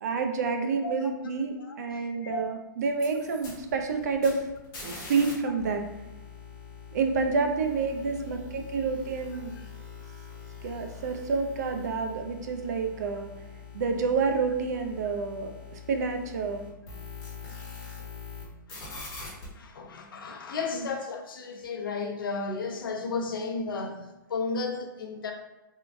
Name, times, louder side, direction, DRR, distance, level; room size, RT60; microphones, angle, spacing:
voice 1, 0.0-4.5 4.8-5.8 6.9-9.5 10.6-13.3 13.7-16.7 20.7-20.9, right 4 dB, 50° right, 5 dB, 0.5 m, -29 dB
voice 2, 1.6-2.4 8.1-8.2 18.7-18.9 19.5-25.3, left 4 dB, 85° left, 3 dB, 0.7 m, -34 dB
sound 1, 2.9-5.3 5.6-18.4 18.7-19.4, left 5 dB, 25° left, 1.2 m, -44 dB
3.6 x 2.5 x 3.4 m, 1.0 s
hypercardioid pair, 165°, 11 cm